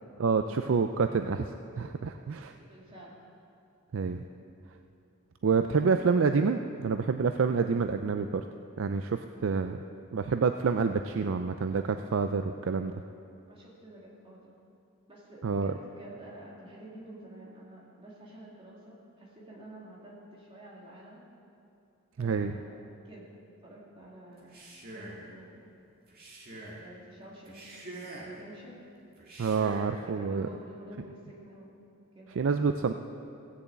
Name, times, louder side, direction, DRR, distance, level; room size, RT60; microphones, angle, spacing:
voice 1, 0.2-1.5 1.8-2.5 3.9-4.2 5.4-8.4 8.8-9.8 10.1-12.9 15.4-15.7 22.2-22.5 29.4-30.5 32.3-32.9, right 5 dB, 60° right, 7 dB, 0.4 m, -28 dB
voice 2, 2.5-3.2 5.7-5.8 13.5-14.5 15.1-21.2 22.2-23.3 23.6-24.6 24.9-25.6 26.5-27.6 27.9-28.8 30.0-31.7 32.1-32.4, right 1 dB, 25° right, -5 dB, 2.6 m, -49 dB
Male speech man speaking, 24.4-25.3 26.1-26.8 27.4-28.4 29.2-29.9, right 1 dB, 40° right, 2.2 m, -45 dB
16.0 x 7.0 x 8.0 m, 2.6 s
head